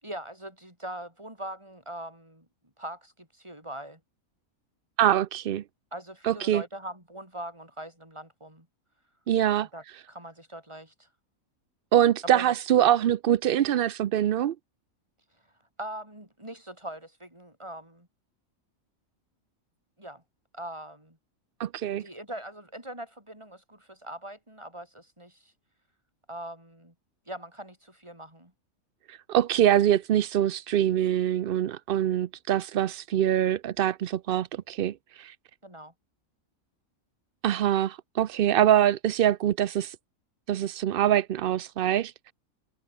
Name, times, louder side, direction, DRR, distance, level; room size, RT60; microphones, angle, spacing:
voice 1, 0.0-2.5 2.8-4.0 5.9-8.7 9.6-11.1 12.2-12.5 15.8-18.1 20.0-20.2 20.5-21.2 22.0-25.5 26.3-26.9 27.3-28.5 35.6-35.9, right 1 dB, 20° right, 5.5 m, -41 dB
voice 2, 5.0-5.6 6.2-6.6 9.3-9.7 11.9-14.6 21.6-22.0 29.1-35.3 37.4-40.0 40.5-42.3, right 11 dB, 65° right, 0.5 m, -24 dB
omnidirectional pair, 1.5 m